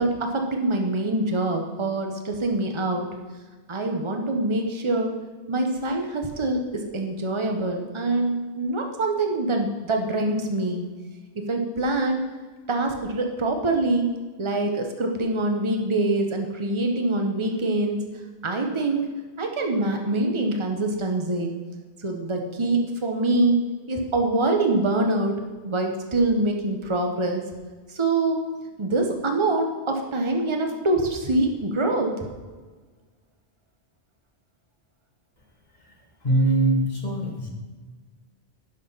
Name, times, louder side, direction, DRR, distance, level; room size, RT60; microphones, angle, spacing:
voice 1, 0.0-3.1 3.7-5.1 5.5-10.9 11.3-12.2 12.7-14.1 14.4-18.0 18.4-21.5 22.0-23.6 23.9-25.4 25.7-27.4 27.9-28.4 28.8-32.3, right 2 dB, 25° right, 3 dB, 1.2 m, -24 dB
voice 2, 36.2-37.5, right 2 dB, 40° left, 0 dB, 1.9 m, -22 dB
10.5 x 6.5 x 5.6 m, 1.4 s
omnidirectional pair, 1.1 m